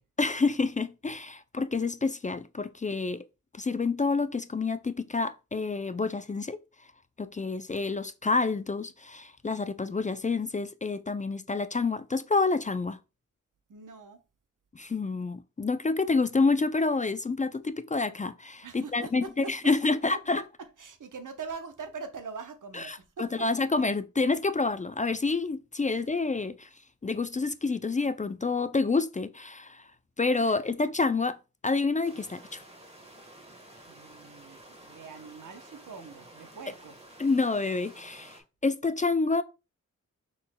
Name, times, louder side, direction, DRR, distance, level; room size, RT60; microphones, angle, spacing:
voice 1, 0.2-3.3 3.5-6.6 7.2-13.0 14.7-20.4 22.7-26.7 27.0-29.9 30.2-32.6 37.2-39.4, left 3 dB, 25° left, 0.3 m, -28 dB
voice 2, 13.7-14.2 18.6-19.7 20.8-23.5 25.9-26.0 30.4-30.6 33.9-36.9, right 5 dB, 80° right, 0.8 m, -43 dB
sound 1, 32.0-38.4, right 1 dB, 20° right, 1.5 m, -51 dB
5.9 x 3.8 x 2.2 m
cardioid pair, 50°, 31 cm